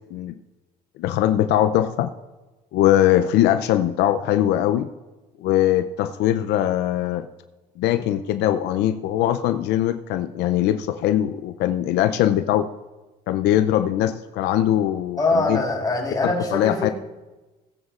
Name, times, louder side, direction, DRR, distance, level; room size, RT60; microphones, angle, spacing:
voice 1, 1.0-2.1 2.7-4.9 5.4-7.3 7.8-12.7 13.3-15.6 16.2-16.9, left 12 dB, 85° left, 10 dB, 0.5 m, -21 dB
voice 2, 15.2-16.9, left 2 dB, 20° left, 0 dB, 3.5 m, -23 dB
17.0 x 9.6 x 2.4 m, 1.1 s
cardioid pair, 110°, 17 cm